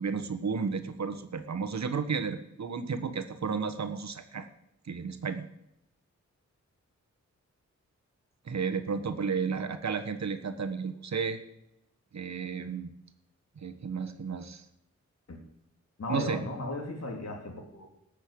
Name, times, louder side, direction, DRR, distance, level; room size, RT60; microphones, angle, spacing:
voice 1, 0.0-4.5 4.8-5.4 8.4-11.4 12.1-12.9 13.6-14.6 16.1-16.4, right 5 dB, 65° right, 7 dB, 1.4 m, -33 dB
voice 2, 16.0-17.9, left 2 dB, 55° left, 1 dB, 3.4 m, -36 dB
19.0 x 6.8 x 8.6 m, 0.83 s
wide cardioid pair, 160°, 30 cm